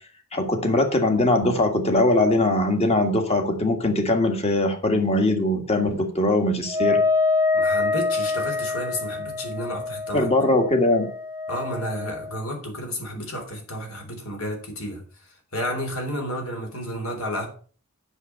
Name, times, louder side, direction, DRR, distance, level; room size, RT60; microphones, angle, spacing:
voice 1, 0.3-7.0 10.1-11.1, left 2 dB, 30° left, 1.7 m, -21 dB
Wind instrument woodwind instrument, 6.7-12.4, left 3 dB, 10° right, 1.2 m, -25 dB
voice 2, 7.5-10.3 11.5-15.0 15.5-17.5, equal, 70° left, 3.5 m, -31 dB
8.1 x 6.7 x 6.7 m
head